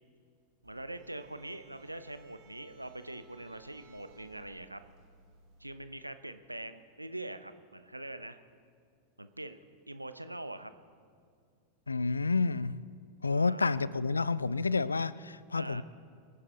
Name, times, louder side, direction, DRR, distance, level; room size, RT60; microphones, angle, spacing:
sound 1, 0.6-5.7, right 3 dB, 40° right, 4.4 m, -59 dB
voice 1, 0.6-4.8 5.6-8.4 9.2-9.6 9.9-10.7 13.3-13.6 15.5-15.8, right 1 dB, 85° right, 11 dB, 0.7 m, -43 dB
voice 2, 11.9-12.8 13.2-15.8, left 4 dB, 80° left, 19 dB, 0.4 m, -29 dB
25.0 x 9.7 x 3.8 m, 2.2 s
figure-of-eight pair, 90°, 0 cm